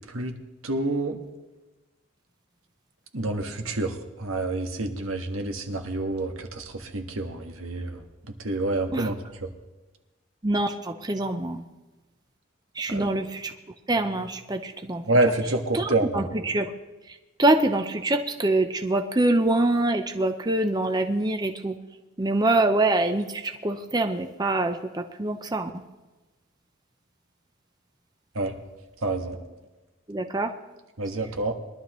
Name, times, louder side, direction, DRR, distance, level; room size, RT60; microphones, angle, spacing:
voice 1, 0.6-1.2 3.1-8.0 8.4-9.2 12.9-13.1 15.1-16.3 28.3-28.6 29.0-29.4 31.0-31.5, right 2 dB, 85° right, 4 dB, 1.5 m, -27 dB
voice 2, 10.4-11.6 12.8-13.5 13.9-15.0 15.7-16.7 17.4-21.7 22.2-25.7 30.1-30.5, right 2 dB, 20° right, 6 dB, 0.6 m, -25 dB
22.0 x 12.0 x 3.1 m, 1.1 s
head